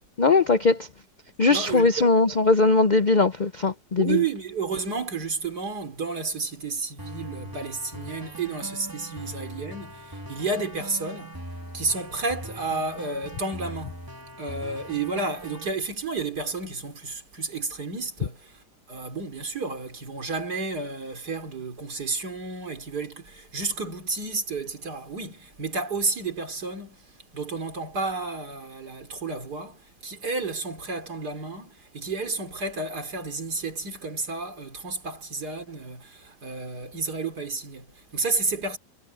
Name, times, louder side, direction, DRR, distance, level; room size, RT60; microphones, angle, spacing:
voice 1, 0.2-0.9 1.4-4.2, left 3 dB, 65° left, 0.4 m, -20 dB
voice 2, 1.5-2.2 4.0-11.4 11.7-14.0 14.4-38.8, right 3 dB, 65° right, 3.8 m, -31 dB
sound 1, 7.0-15.7, right 1 dB, 10° right, 2.9 m, -40 dB
omnidirectional pair, 1.9 m